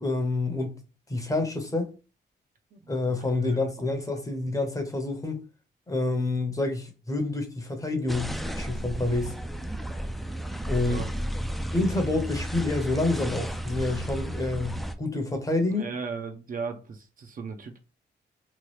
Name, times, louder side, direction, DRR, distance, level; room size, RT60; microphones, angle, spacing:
voice 1, 0.0-0.8 1.1-1.9 2.9-5.4 5.9-9.3 10.7-11.0 11.7-15.9, left 2 dB, 20° left, 0.7 m, -28 dB
sound 1, 8.1-14.9, right 1 dB, ahead, 0.3 m, -33 dB
voice 2, 15.8-17.8, right 5 dB, 50° right, 0.5 m, -36 dB
3.0 x 2.3 x 3.1 m
cardioid pair, 110°, 19 cm